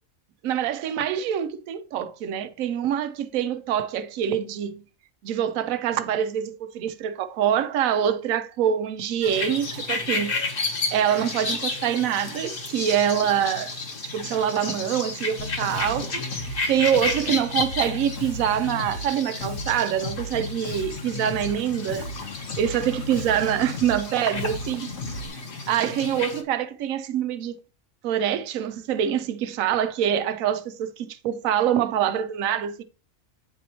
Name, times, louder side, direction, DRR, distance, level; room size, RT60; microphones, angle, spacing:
voice 1, 0.4-4.8 5.2-10.3 10.9-13.7 14.1-22.1 22.6-24.9 25.7-27.6 28.0-32.8, right 9 dB, 90° right, 1.0 m, -25 dB
sound 1, 9.2-26.4, left 3 dB, 45° left, 1.1 m, -32 dB
Bass guitar, 15.4-25.3, left 2 dB, 75° left, 1.9 m, -36 dB
9.1 x 4.1 x 2.9 m
omnidirectional pair, 1.4 m